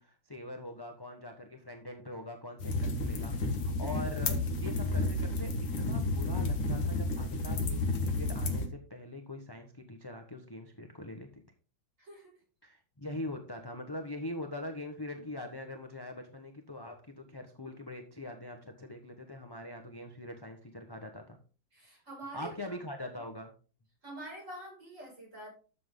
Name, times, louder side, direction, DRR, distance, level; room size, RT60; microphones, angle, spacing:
voice 1, 0.0-11.4 12.6-21.4 22.3-23.5, left 1 dB, 15° left, 4 dB, 1.1 m, -43 dB
sound 1, 2.6-8.7, left 2 dB, 80° left, 2.4 m, -31 dB
voice 2, 3.7-4.0 12.0-12.4 15.0-15.2 21.7-22.6 24.0-25.5, right 1 dB, 35° right, -2 dB, 6.6 m, -46 dB
12.5 x 7.6 x 3.8 m, 0.37 s
omnidirectional pair, 2.2 m